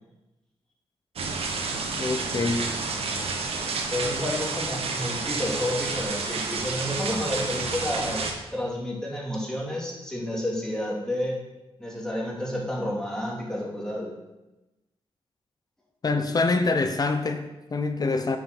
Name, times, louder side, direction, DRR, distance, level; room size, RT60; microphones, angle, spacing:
sound 1, 1.2-8.3, right 4 dB, 80° right, 1.3 m, -30 dB
voice 1, 2.0-2.7 16.0-18.4, left 3 dB, 40° left, 0.8 m, -25 dB
voice 2, 3.9-11.4 11.8-14.1, left 1 dB, 5° left, 2.7 m, -30 dB
8.9 x 6.1 x 6.0 m
wide cardioid pair, 115°, 10 cm